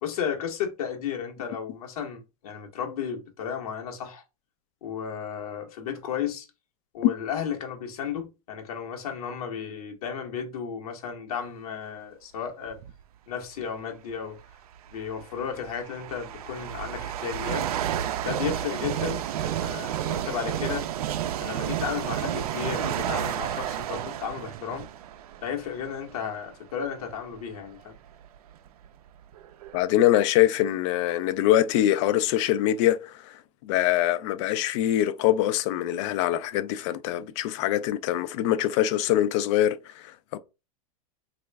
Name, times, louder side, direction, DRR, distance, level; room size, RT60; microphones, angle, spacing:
voice 1, 0.0-4.2 4.8-6.5 6.9-12.8 13.3-14.4 14.9-17.7 18.2-20.9 21.4-24.9 25.4-27.9, left 7 dB, 75° left, 1.0 m, -34 dB
sound 1, 12.7-13.0 14.1-14.2 15.0-26.4 27.0-27.1 27.9-28.0 28.2-29.8, right 10 dB, 80° right, 0.4 m, -31 dB
voice 2, 29.7-40.4, left 12 dB, 55° left, 0.4 m, -24 dB
3.1 x 2.4 x 3.2 m
hypercardioid pair, 125°, 19 cm